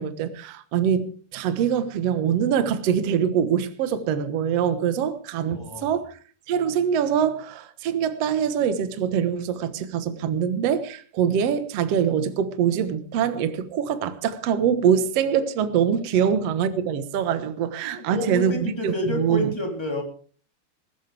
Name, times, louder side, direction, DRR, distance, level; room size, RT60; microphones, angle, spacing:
voice 1, 0.0-6.2 6.5-19.5, right 8 dB, 65° right, 1.6 m, -24 dB
voice 2, 5.4-6.0 16.1-16.2 17.9-20.0, left 1 dB, 5° left, 2.9 m, -29 dB
19.5 x 16.0 x 3.5 m
omnidirectional pair, 4.8 m